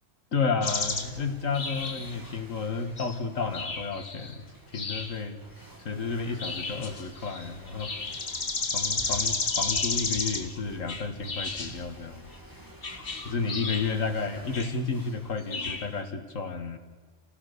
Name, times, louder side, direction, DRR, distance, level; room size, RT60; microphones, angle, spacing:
voice 1, 0.3-4.4 4.7-5.4 5.8-7.9 8.7-12.3 13.2-16.8, left 4 dB, 90° left, 7 dB, 2.2 m, -31 dB
sound 1, 0.6-1.1 1.5-2.3 3.0-3.2 3.5-4.3 4.7-5.2 6.4-10.6 10.9-11.8 12.8-14.0 14.5-14.8 15.4-15.9, left 4 dB, 45° left, 1.7 m, -32 dB
sound 2, 0.7-16.0, right 1 dB, 15° right, 3.1 m, -50 dB
29.0 x 17.5 x 6.9 m, 1.5 s
omnidirectional pair, 1.3 m